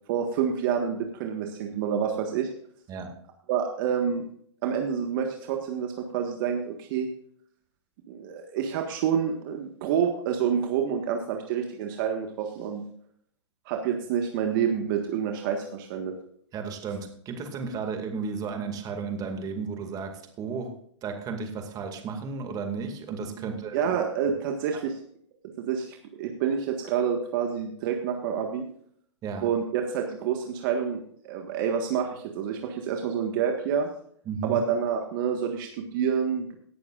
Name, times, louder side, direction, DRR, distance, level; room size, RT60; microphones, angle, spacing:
voice 1, 0.1-2.5 3.5-4.2 4.6-7.1 8.1-12.8 13.6-16.2 23.4-25.0 25.6-28.7 29.4-33.9 34.4-36.6, right 7 dB, 45° right, 4 dB, 1.6 m, -28 dB
voice 2, 16.5-20.1 20.4-20.7 21.0-23.8 29.2-29.5 34.3-34.6, right 5 dB, 25° right, 5 dB, 2.3 m, -33 dB
18.0 x 10.5 x 2.5 m, 0.63 s
hypercardioid pair, 130°, 16 cm